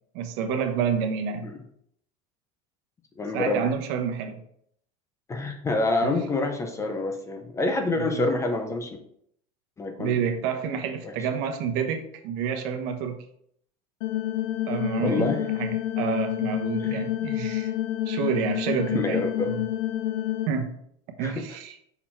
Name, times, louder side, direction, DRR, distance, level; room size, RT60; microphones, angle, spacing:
voice 1, 0.1-1.5 3.3-4.4 6.0-6.2 7.9-8.3 10.0-13.2 14.7-15.3 15.6-17.7 18.1-19.6 20.5-20.8 21.2-21.8, right 7 dB, 60° right, 6 dB, 1.0 m, -29 dB
voice 2, 3.2-3.7 5.3-9.0 9.8-10.2 11.0-11.1 15.0-15.4 16.8-17.0 18.9-19.5 21.2-21.5, left 2 dB, 15° left, 5 dB, 0.6 m, -27 dB
sound 1, 14.0-20.5, left 13 dB, 70° left, 0.5 m, -28 dB
5.8 x 4.2 x 4.4 m, 0.69 s
supercardioid pair, 150°, 19 cm